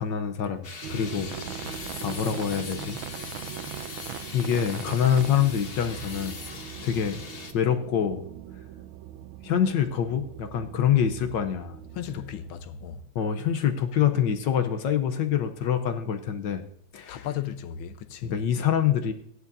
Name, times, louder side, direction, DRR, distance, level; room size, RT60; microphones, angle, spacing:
voice 1, 0.0-1.3 1.7-3.0 4.3-6.3 6.8-7.2 7.5-8.2 9.4-11.8 13.1-16.6 16.9-17.3 18.2-19.1, left 8 dB, 70° left, 1.4 m, -25 dB
sound 1, 0.6-7.5, left 4 dB, 40° left, 1.0 m, -40 dB
sound 2, 0.8-12.6, right 11 dB, 85° right, 1.4 m, -40 dB
voice 2, 1.1-1.7 11.9-13.0 17.1-18.3, left 10 dB, 90° left, 1.6 m, -36 dB
16.0 x 11.0 x 2.7 m
omnidirectional pair, 2.2 m